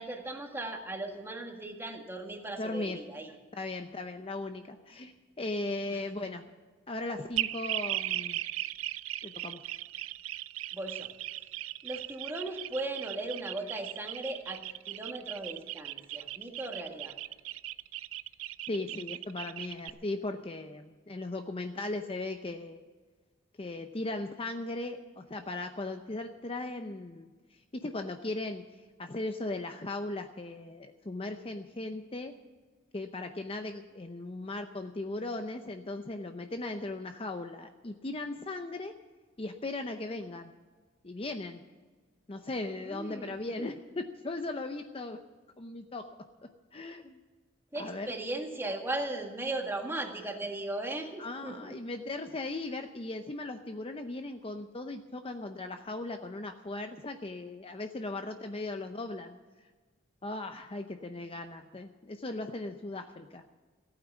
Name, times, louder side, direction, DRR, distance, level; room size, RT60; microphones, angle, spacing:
voice 1, 0.0-3.3 5.9-6.0 10.7-11.1 11.8-17.2 42.8-43.4 47.7-51.7, right 2 dB, 10° right, 2 dB, 1.9 m, -37 dB
voice 2, 2.6-3.0 3.5-6.5 6.9-8.4 9.2-9.6 18.7-22.8 23.6-27.3 27.7-28.6 29.0-32.3 32.9-38.9 39.4-40.5 41.0-41.6 42.3-45.2 45.6-46.1 46.7-47.2 47.8-48.1 51.2-59.4 60.2-63.4, left 2 dB, 30° left, 6 dB, 0.7 m, -38 dB
sound 1, 7.4-19.9, right 14 dB, 80° right, 0.4 m, -37 dB
15.0 x 9.0 x 8.3 m, 1.3 s
head